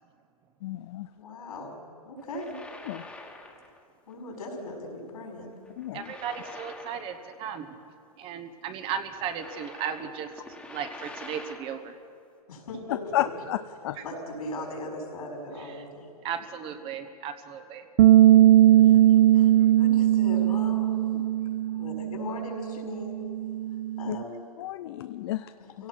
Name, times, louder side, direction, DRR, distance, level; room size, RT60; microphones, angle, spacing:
voice 1, 0.6-1.1 2.9-3.0 5.8-6.1 13.1-13.6 13.8-14.0 18.7-19.0 24.1-24.2 24.6-25.5, left 14 dB, 45° left, 11 dB, 0.5 m, -31 dB
voice 2, 1.2-1.8 2.0-2.6 4.1-5.6 12.5-13.3 14.0-16.1 18.9-21.1 21.4-23.2 24.0-24.4 25.6-25.9, left 2 dB, 75° left, 0 dB, 5.8 m, -39 dB
sound 1, 2.2-3.8 4.1-4.3 5.7-7.6 7.8-7.9 8.8-11.9, left 2 dB, 5° left, 1.6 m, -46 dB
voice 3, 5.9-7.8 8.2-10.3 10.7-12.0 16.2-17.8, right 8 dB, 30° right, 8 dB, 1.1 m, -35 dB
Bass guitar, 18.0-24.2, right 13 dB, 55° right, 0.4 m, -20 dB
25.5 x 17.0 x 6.0 m, 2.4 s
hypercardioid pair, 140°, 19 cm